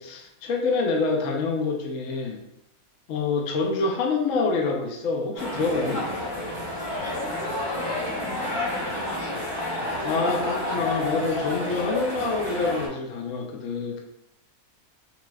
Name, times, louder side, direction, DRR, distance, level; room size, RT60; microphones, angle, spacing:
voice 1, 0.0-2.4 3.1-6.1 10.0-14.0, left 4 dB, 70° left, 1 dB, 0.9 m, -26 dB
sound 1, 5.4-12.9, left 1 dB, 25° right, 1.5 m, -30 dB
voice 2, 7.1-9.4, left 1 dB, 85° left, -3 dB, 1.5 m, -38 dB
5.8 x 3.0 x 2.3 m, 0.85 s
omnidirectional pair, 1.5 m